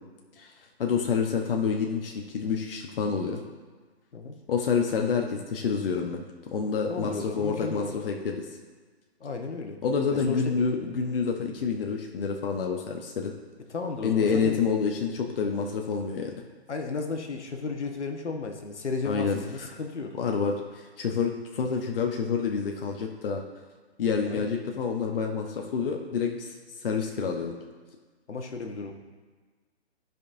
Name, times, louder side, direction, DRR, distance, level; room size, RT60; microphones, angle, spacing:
voice 1, 0.8-3.4 4.5-8.5 9.8-13.3 14.0-16.4 19.0-19.4 20.1-23.4 24.0-27.6, left 5 dB, 55° left, 2 dB, 0.9 m, -28 dB
voice 2, 6.9-8.0 9.2-9.8 10.1-10.5 13.7-14.6 16.7-20.2 24.3-24.5 28.3-28.9, left 4 dB, 85° left, 4 dB, 1.3 m, -34 dB
13.5 x 5.3 x 2.6 m, 1.4 s
hypercardioid pair, 155°, 34 cm